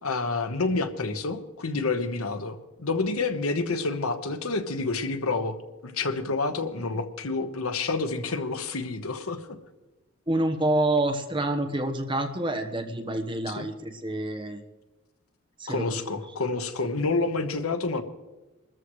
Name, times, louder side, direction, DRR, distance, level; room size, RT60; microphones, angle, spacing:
voice 1, 0.0-5.6 5.8-9.4 13.5-13.7 15.7-18.0, left 3 dB, 90° left, 8 dB, 1.2 m, -28 dB
voice 2, 10.3-14.6 15.6-16.0, right 1 dB, 20° right, 6 dB, 1.2 m, -27 dB
24.5 x 13.5 x 3.2 m, 1.1 s
head